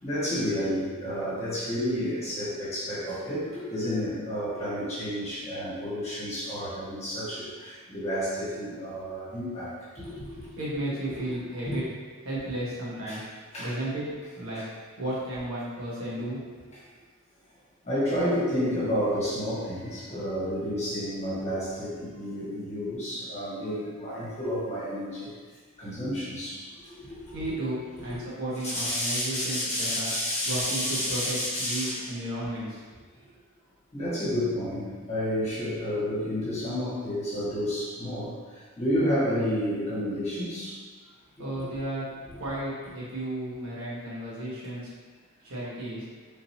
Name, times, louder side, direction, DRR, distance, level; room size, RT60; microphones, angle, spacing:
voice 1, 0.0-10.5 11.7-11.8 13.1-13.2 13.5-13.7 14.5-14.6 16.7-16.8 17.8-25.3 25.8-27.3 27.9-28.2 28.7-32.1 33.9-40.8, equal, 30° left, -10 dB, 1.3 m, -30 dB
voice 2, 10.6-11.8 12.2-13.3 13.6-14.0 14.3-14.6 15.0-16.7 27.3-30.1 30.4-32.8 41.4-42.1 42.3-44.9 45.4-46.0, right 1 dB, 90° right, -7 dB, 1.2 m, -33 dB
3.7 x 2.8 x 2.8 m, 1.5 s
head